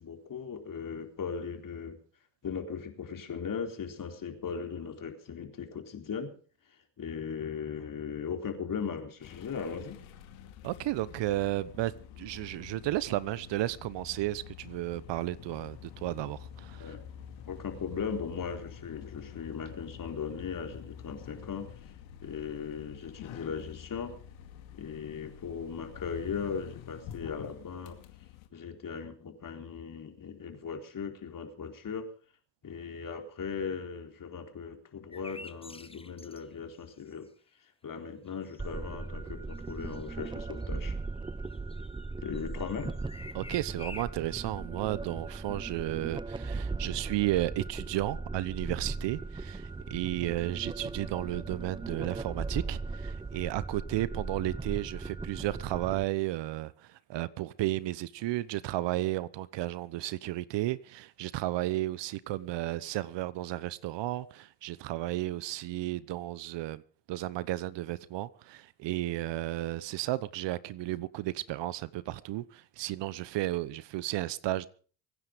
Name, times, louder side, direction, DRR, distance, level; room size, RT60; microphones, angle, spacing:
voice 1, 0.0-2.0 2.4-6.3 7.0-10.0 16.8-17.0 17.5-21.7 22.2-24.2 24.8-28.0 28.5-32.1 32.6-37.3 37.8-41.0 42.2-42.9, left 6 dB, 40° left, 4.1 m, -38 dB
sound 1, 9.2-28.5, left 9 dB, 70° left, 2.4 m, -48 dB
voice 2, 10.6-16.9 43.3-66.8 67.1-74.7, right 16 dB, 60° right, 1.0 m, -33 dB
sound 2, 35.1-36.5 37.1-37.2 38.3-38.7 39.0-40.3 40.6-40.7 41.0-44.0, left 3 dB, 10° left, 1.2 m, -48 dB
sound 3, 38.6-56.1, right 3 dB, 10° right, 0.6 m, -38 dB
24.0 x 9.9 x 5.1 m
hypercardioid pair, 70°, 49 cm